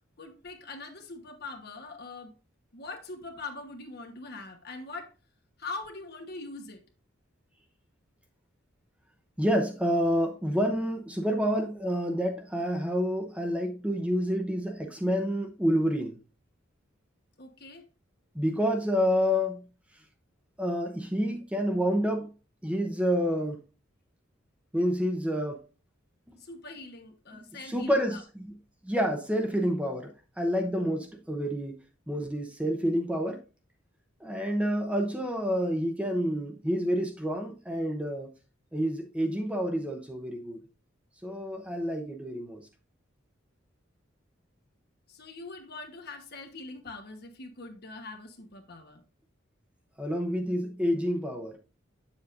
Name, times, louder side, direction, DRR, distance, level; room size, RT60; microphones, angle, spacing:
voice 1, 0.2-2.3 2.7-5.1 5.6-6.8 17.4-17.9 26.4-28.2 45.1-49.0, left 3 dB, 55° left, 1.2 m, -42 dB
voice 2, 9.4-16.2 18.3-19.7 20.6-22.3 22.6-23.6 24.7-25.6 27.3-28.5 28.8-30.1 30.4-33.4 34.2-38.3 38.7-40.6 41.2-42.6 50.0-51.6, equal, 5° right, 0.8 m, -28 dB
8.1 x 7.1 x 2.5 m
head